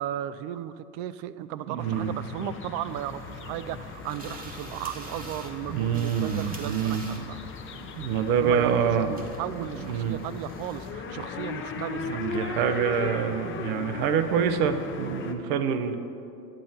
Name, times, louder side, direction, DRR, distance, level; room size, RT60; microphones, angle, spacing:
voice 1, 0.0-7.4 8.4-12.2, right 11 dB, 50° right, 15 dB, 0.5 m, -35 dB
voice 2, 1.7-2.1 5.7-7.0 8.0-9.1 9.8-10.2 12.0-16.0, right 7 dB, 65° right, 9 dB, 0.9 m, -26 dB
sound 1, 1.8-15.3, left 5 dB, 25° left, 0.8 m, -38 dB
sound 2, 2.8-10.9, right 2 dB, 20° right, 1.2 m, -46 dB
10.0 x 7.4 x 5.6 m, 2.7 s
hypercardioid pair, 100°, 47 cm